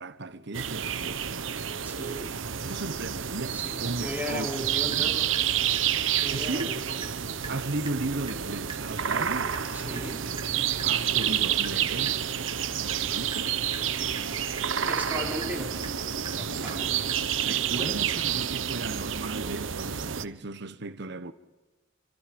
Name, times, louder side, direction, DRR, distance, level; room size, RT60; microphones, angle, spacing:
voice 1, 0.0-1.5 2.6-4.5 4.9-5.2 5.9-6.0 6.3-6.7 7.5-9.5 10.8-12.2 12.8-13.5 16.5-16.8 17.4-21.3, right 2 dB, 60° right, 1.2 m, -36 dB
sound 1, 0.5-20.2, right 9 dB, 85° right, 1.0 m, -29 dB
voice 2, 1.8-2.4 3.1-3.2 3.5-5.3 6.2-7.1 9.7-10.2 14.9-15.7 16.3-17.2 17.8-18.0, equal, 10° right, 4.6 m, -36 dB
Water tap faucet / Drip, 4.5-4.6 4.9-6.3 6.6-6.7 7.0-7.2 7.4-7.6 7.9-8.0 8.3-17.8, right 4 dB, 25° right, 2.9 m, -45 dB
sound 2, 8.6-19.8, left 2 dB, 25° left, 2.0 m, -53 dB
28.0 x 26.0 x 5.3 m
head